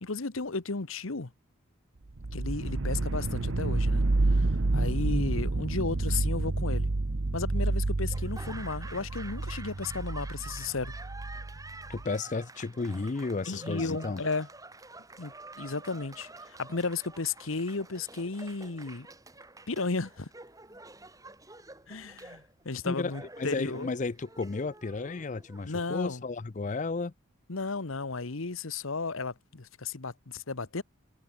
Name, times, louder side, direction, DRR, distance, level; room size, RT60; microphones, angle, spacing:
voice 1, 0.0-1.3 2.3-4.0 4.7-6.9 7.3-10.9 13.5-14.5 15.2-19.1 19.7-20.3 21.9-23.9 25.7-26.2 27.5-30.8, left 4 dB, 80° left, 1.2 m, -34 dB
sound 1, 2.2-12.0, right 2 dB, 75° right, 1.0 m, -29 dB
Laughter / Applause, 8.1-26.2, right 2 dB, 15° right, 7.8 m, -48 dB
voice 2, 11.9-14.2 22.8-27.1, left 3 dB, 35° left, 0.5 m, -33 dB
head